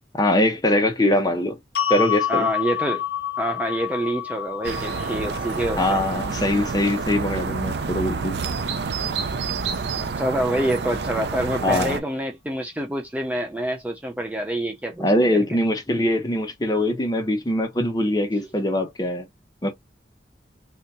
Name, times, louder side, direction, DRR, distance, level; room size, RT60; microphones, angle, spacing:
voice 1, 0.1-1.6 1.9-2.5 5.8-8.4 11.6-12.0 15.0-19.3 19.6-19.7, left 1 dB, 20° left, 0.8 m, -22 dB
sound 1, 1.7-8.0, left 11 dB, 65° left, 0.8 m, -29 dB
voice 2, 2.3-3.0 3.4-6.0 10.0-15.4 18.4-18.5, right 1 dB, 10° right, 0.4 m, -27 dB
sound 2, 4.6-12.0, right 5 dB, 70° right, 0.5 m, -28 dB
3.4 x 2.8 x 2.6 m
head